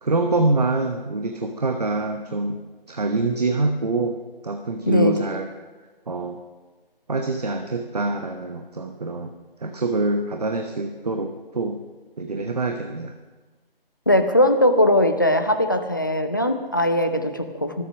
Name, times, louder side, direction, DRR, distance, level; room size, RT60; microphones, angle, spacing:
voice 1, 0.0-2.6 2.9-4.2 4.4-5.5 6.1-6.4 7.1-9.3 9.6-11.8 12.2-13.1, right 2 dB, 40° right, 5 dB, 1.0 m, -25 dB
voice 2, 14.1-17.8, left 1 dB, 20° left, 6 dB, 0.6 m, -20 dB
23.5 x 8.2 x 6.2 m, 1.3 s
figure-of-eight pair, 170°, 30 cm